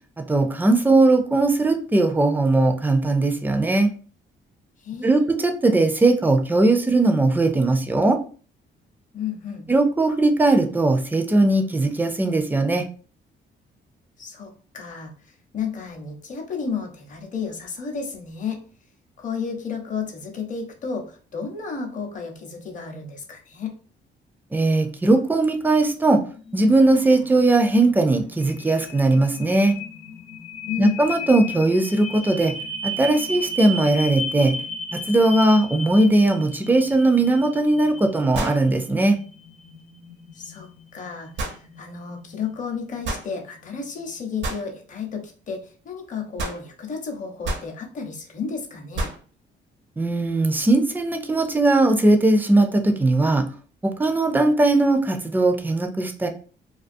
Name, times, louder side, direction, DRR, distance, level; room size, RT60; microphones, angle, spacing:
voice 1, 0.2-3.9 5.0-8.2 9.7-12.8 24.5-26.2 26.5-29.7 30.8-32.5 32.8-34.5 34.9-39.2 50.0-53.4 53.8-56.3, right 2 dB, 10° right, 6 dB, 0.4 m, -19 dB
voice 2, 4.8-5.2 9.1-9.7 14.2-18.6 19.2-23.7 30.7-31.0 40.3-40.7 40.9-49.1, left 6 dB, 40° left, 2 dB, 0.7 m, -32 dB
sound 1, 26.0-44.1, left 1 dB, 85° left, 0.7 m, -36 dB
sound 2, 37.1-37.2 38.3-38.7 41.4-41.6 43.0-43.3 44.4-44.7 46.4-46.6 47.4-47.7 48.9-49.2, right 2 dB, 65° right, 0.7 m, -29 dB
2.4 x 2.3 x 2.5 m, 0.39 s
cardioid pair, 90°, 20 cm